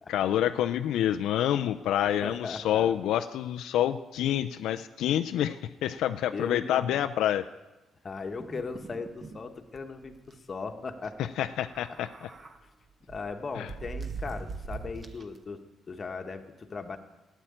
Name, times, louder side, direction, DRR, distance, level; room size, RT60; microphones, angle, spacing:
voice 1, 0.1-7.4 11.2-12.3 13.6-13.7, left 11 dB, 85° left, 10 dB, 0.4 m, -28 dB
voice 2, 2.2-2.9 6.3-7.0 8.0-11.5 13.0-15.6 15.9-17.0, left 4 dB, 35° left, 6 dB, 1.3 m, -38 dB
sound 1, 8.4-9.4 9.7-9.8 10.1-10.3 11.5-12.6 13.1-15.4, right 4 dB, 35° right, 1.1 m, -41 dB
12.5 x 9.1 x 8.6 m, 1.1 s
cardioid pair, 90°, 0 cm